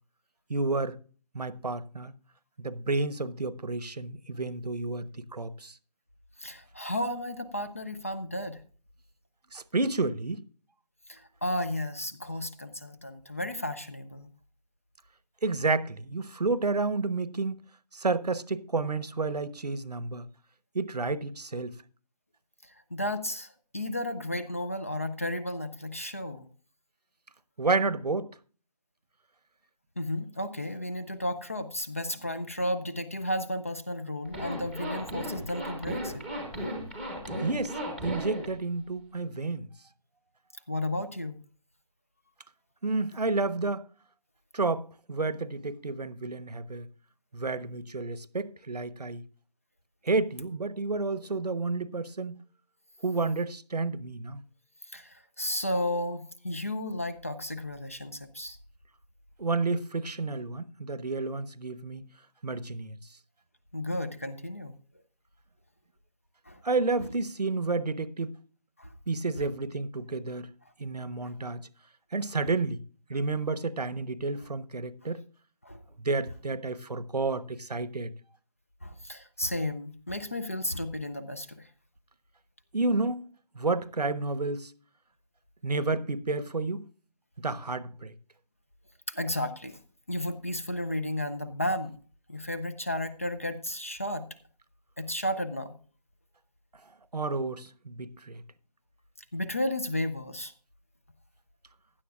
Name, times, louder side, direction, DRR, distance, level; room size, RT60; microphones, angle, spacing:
voice 1, 0.5-1.0 1.3-2.1 2.6-5.8 9.5-10.4 15.4-17.5 17.9-20.3 20.7-21.7 27.6-28.3 37.4-37.8 38.0-39.7 42.8-43.9 44.5-46.9 47.3-49.2 50.0-52.4 53.0-54.4 59.4-62.0 62.4-63.0 66.6-68.4 69.1-70.5 70.8-71.6 72.1-72.8 73.1-75.2 76.0-78.1 82.7-83.3 83.5-84.7 85.6-86.8 87.4-88.1 97.1-98.4, right 3 dB, 75° right, 1.0 m, -30 dB
voice 2, 6.4-8.6 11.1-14.3 22.9-26.5 30.0-36.2 40.7-41.4 54.9-58.6 63.7-64.7 66.5-66.6 68.8-68.9 75.6-75.8 78.8-81.7 89.1-89.8 90.1-91.9 92.3-94.2 95.0-95.7 99.3-100.5, left 1 dB, 20° left, 0.5 m, -33 dB
Zipper (clothing), 34.3-38.5, equal, 5° left, 1.0 m, -35 dB
16.0 x 11.5 x 2.4 m
figure-of-eight pair, 160°, 21 cm